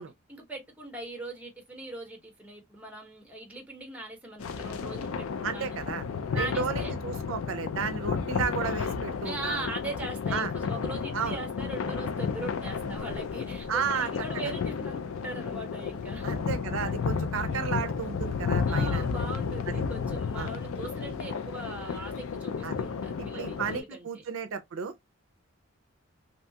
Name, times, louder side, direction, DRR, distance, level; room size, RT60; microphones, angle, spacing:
voice 1, 0.3-5.8 6.3-6.9 9.2-16.3 18.7-24.2, right 2 dB, 5° right, 0.7 m, -40 dB
sound 1, 4.4-23.8, left 5 dB, 70° left, 0.4 m, -32 dB
voice 2, 5.4-6.0 6.4-9.6 10.3-10.5 11.1-11.4 13.7-14.1 16.2-19.1 19.7-19.8 20.4-20.5 22.6-22.8 23.2-25.0, right 6 dB, 65° right, 0.4 m, -33 dB
2.7 x 2.2 x 2.7 m
head